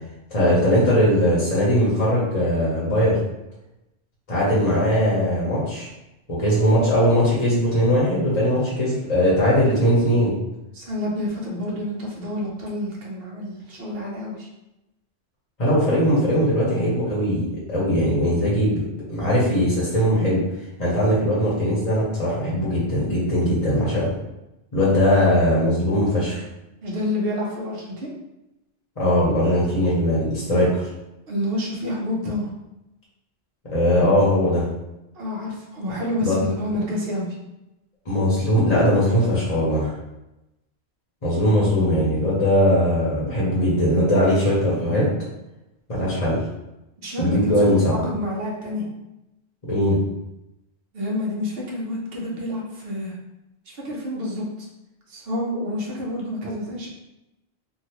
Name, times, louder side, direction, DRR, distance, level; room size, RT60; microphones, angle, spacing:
voice 1, 0.3-3.2 4.3-5.9 6.3-10.3 15.6-20.4 20.8-24.1 24.7-26.4 29.0-30.8 33.7-34.7 36.2-36.4 38.1-39.9 41.2-45.1 45.9-46.4 47.2-48.0 49.6-50.0, equal, 35° left, -7 dB, 0.9 m, -20 dB
voice 2, 10.7-14.5 26.8-28.1 30.5-30.7 31.3-32.5 35.1-37.4 47.0-48.9 50.9-53.1 53.7-54.7 55.1-56.9, left 1 dB, 60° right, -3 dB, 1.0 m, -28 dB
3.3 x 2.4 x 2.9 m, 0.94 s
omnidirectional pair, 1.1 m